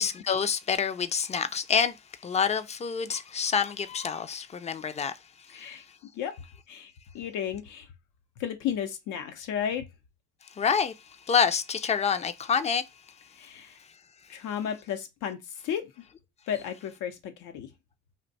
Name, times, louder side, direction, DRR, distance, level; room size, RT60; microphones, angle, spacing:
voice 1, 0.0-2.0 2.2-5.2 5.5-5.7 10.5-12.9, left 6 dB, 25° left, 0.4 m, -27 dB
voice 2, 5.5-5.8 6.1-6.3 6.7-7.9 8.4-9.9 13.4-13.7 14.3-15.4 15.6-15.9 16.5-17.7, left 9 dB, 90° left, 0.7 m, -33 dB
2.6 x 2.2 x 3.9 m
cardioid pair, 90°, 30 cm